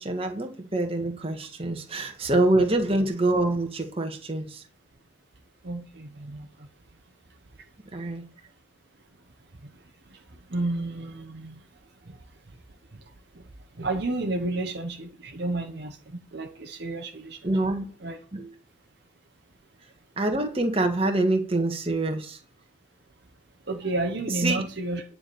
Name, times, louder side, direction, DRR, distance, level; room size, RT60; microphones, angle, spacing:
voice 1, 0.0-4.6 7.9-8.2 17.4-17.8 18.3-18.5 20.2-22.4 24.4-24.6, right 2 dB, 30° right, 1.6 m, -25 dB
voice 2, 5.6-6.7 9.6-9.7 10.1-11.7 12.0-12.2 12.9-13.0 13.3-13.5 13.7-17.7 18.0-18.2 23.7-25.0, right 2 dB, 55° right, 1.1 m, -32 dB
10.0 x 4.9 x 6.8 m
head